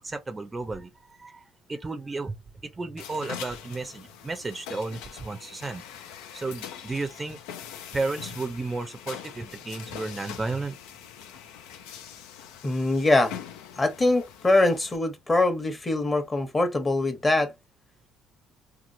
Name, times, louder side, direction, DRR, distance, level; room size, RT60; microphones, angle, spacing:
voice 1, 0.0-2.4 2.6-6.0 6.3-7.4 7.9-10.8, right 3 dB, 20° right, 0.5 m, -33 dB
sound 1, 3.0-15.0, left 9 dB, 85° left, 0.5 m, -43 dB
voice 2, 12.6-13.4 13.8-17.5, left 2 dB, 25° left, 1.0 m, -23 dB
2.9 x 2.4 x 2.7 m
supercardioid pair, 85°, 0 cm